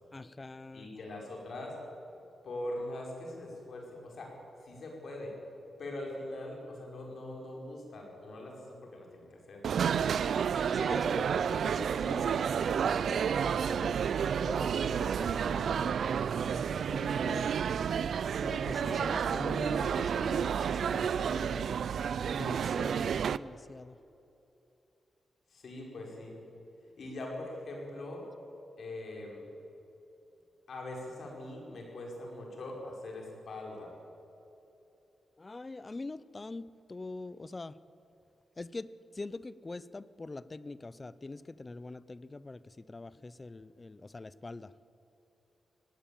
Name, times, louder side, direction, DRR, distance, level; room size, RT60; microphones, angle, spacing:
voice 1, 0.1-0.9 10.7-13.3 13.5-16.0 16.4-17.6 18.4-21.7 22.3-24.0 35.4-37.8 38.6-44.7, left 3 dB, 20° left, 17 dB, 0.5 m, -44 dB
voice 2, 0.7-1.8 2.4-4.3 4.6-5.4 5.8-9.6 18.8-19.0 25.5-26.4 27.0-28.3 28.8-29.4 30.7-33.9, left 1 dB, 55° left, 0 dB, 5.1 m, -42 dB
sound 1, 9.6-23.4, right 7 dB, 65° right, 0.4 m, -30 dB
18.5 x 17.0 x 8.7 m, 2.9 s
wide cardioid pair, 145°, 0 cm